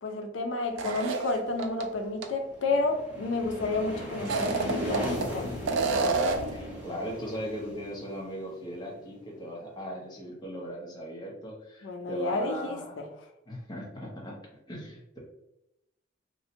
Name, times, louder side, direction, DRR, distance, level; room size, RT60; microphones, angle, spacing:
voice 1, 0.0-5.6 11.8-13.1, left 2 dB, 75° left, 5 dB, 0.4 m, -31 dB
sound 1, 0.8-1.8 2.2-2.3 4.1-5.3 5.7-6.6, right 4 dB, 85° right, 0.3 m, -28 dB
sound 2, 2.5-9.2, left 1 dB, 10° right, 0.8 m, -37 dB
voice 2, 6.5-13.0 13.5-14.4 14.7-15.2, equal, 20° left, -3 dB, 0.6 m, -38 dB
2.6 x 2.1 x 2.6 m, 0.86 s
head